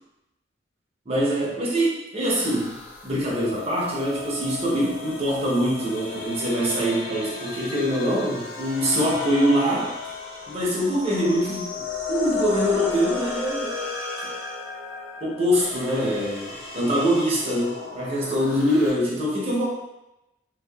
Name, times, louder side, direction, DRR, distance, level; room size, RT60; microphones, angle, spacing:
voice 1, 1.1-2.8 3.0-9.9 10.5-11.8 12.1-13.8 15.2-19.7, equal, 35° right, -5 dB, 0.7 m, -24 dB
sound 1, 2.4-18.9, left 4 dB, 65° left, 0.6 m, -34 dB
2.7 x 2.1 x 2.3 m, 0.93 s
head